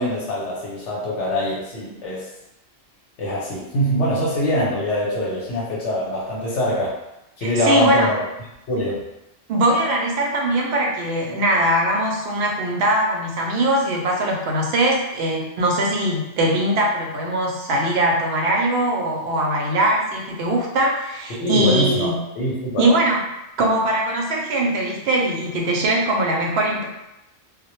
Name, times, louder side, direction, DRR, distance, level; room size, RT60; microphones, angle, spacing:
voice 1, 0.0-2.3 3.2-6.9 7.4-8.2 8.7-9.0 21.4-22.9, equal, 90° left, -6 dB, 0.9 m, -23 dB
voice 2, 7.4-8.1 9.5-22.2 22.8-23.2 23.6-26.9, right 1 dB, 70° right, -1 dB, 0.8 m, -21 dB
2.1 x 2.0 x 2.9 m, 0.90 s
omnidirectional pair, 1.1 m